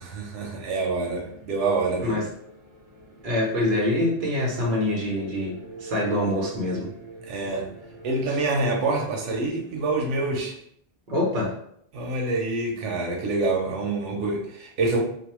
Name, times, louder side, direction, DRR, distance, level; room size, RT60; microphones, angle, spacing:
voice 1, 0.0-2.2 7.2-7.7 8.0-10.6 11.9-15.0, right 3 dB, 90° right, 0 dB, 1.0 m, -26 dB
sound 1, 0.7-10.3, right 3 dB, 25° right, 1.1 m, -46 dB
voice 2, 3.2-6.9 11.1-11.6, left 1 dB, 50° right, -3 dB, 0.9 m, -25 dB
2.6 x 2.0 x 2.9 m, 0.68 s
omnidirectional pair, 1.2 m